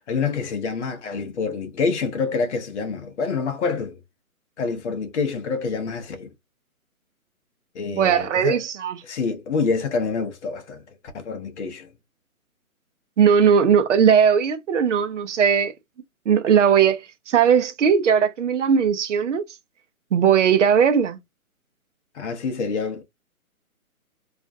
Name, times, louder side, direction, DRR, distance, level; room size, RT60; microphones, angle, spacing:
voice 1, 0.1-4.0 4.6-6.3 7.7-8.6 9.0-10.8 11.2-11.9 22.1-23.0, left 4 dB, 55° left, 0.7 m, -27 dB
voice 2, 7.9-9.0 13.2-15.7 16.3-19.4 20.1-21.2, right 7 dB, 55° right, 0.5 m, -18 dB
2.5 x 2.1 x 2.4 m
hypercardioid pair, 145°, 43 cm